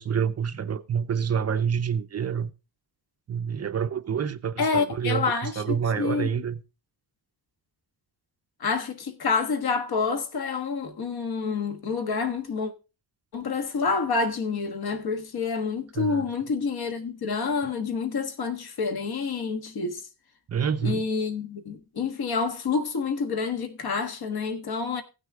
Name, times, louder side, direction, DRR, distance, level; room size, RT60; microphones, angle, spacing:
voice 1, 0.0-2.5 3.3-6.6 16.0-16.2 20.5-21.0, right 7 dB, 40° right, 0.6 m, -27 dB
voice 2, 4.6-6.4 8.6-12.7 13.3-20.0 20.8-25.0, left 4 dB, 65° left, 1.5 m, -28 dB
15.5 x 6.4 x 3.5 m
wide cardioid pair, 150°, 40 cm